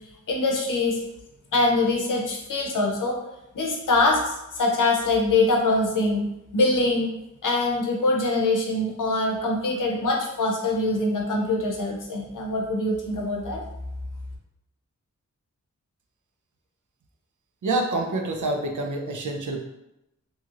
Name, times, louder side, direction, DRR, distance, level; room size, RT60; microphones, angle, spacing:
voice 1, 0.3-1.0 1.5-3.2 3.5-6.3 6.5-7.1 7.4-13.6, left 2 dB, 90° left, 1 dB, 0.6 m, -23 dB
voice 2, 17.6-19.6, right 2 dB, 75° right, 3 dB, 0.6 m, -27 dB
2.9 x 2.8 x 2.4 m, 0.89 s
wide cardioid pair, 55°, 31 cm